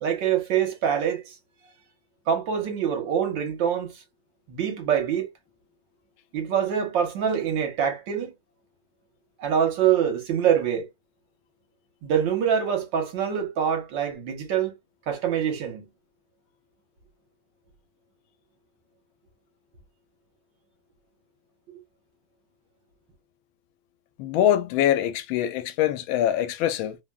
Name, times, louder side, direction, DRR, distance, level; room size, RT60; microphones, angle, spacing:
voice 1, 0.0-1.3 2.3-4.0 4.5-5.3 6.3-8.3 9.4-10.9 12.0-14.7 15.1-15.9, right 8 dB, 70° right, 1.6 m, -25 dB
voice 2, 24.2-27.0, left 11 dB, 80° left, 1.4 m, -23 dB
3.5 x 2.1 x 2.2 m
omnidirectional pair, 2.2 m